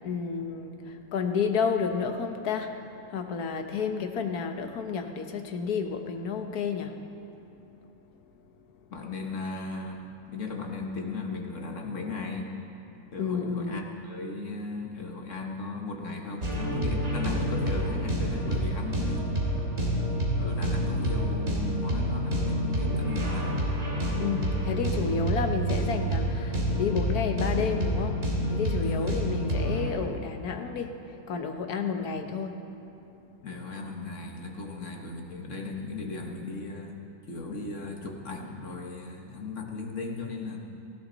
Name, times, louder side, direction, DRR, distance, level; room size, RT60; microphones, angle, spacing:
voice 1, 0.0-7.0 13.2-13.9 24.2-32.7, left 5 dB, 80° left, 6 dB, 1.5 m, -31 dB
voice 2, 8.9-10.0 10.3-12.5 13.1-19.3 20.4-23.6 28.8-29.3 32.0-32.1 33.4-37.0 37.3-40.6, left 3 dB, 55° left, 1 dB, 1.7 m, -36 dB
sound 1, 16.4-29.9, equal, 45° right, 3.3 m, -28 dB
18.0 x 16.5 x 4.0 m, 2.8 s
omnidirectional pair, 1.6 m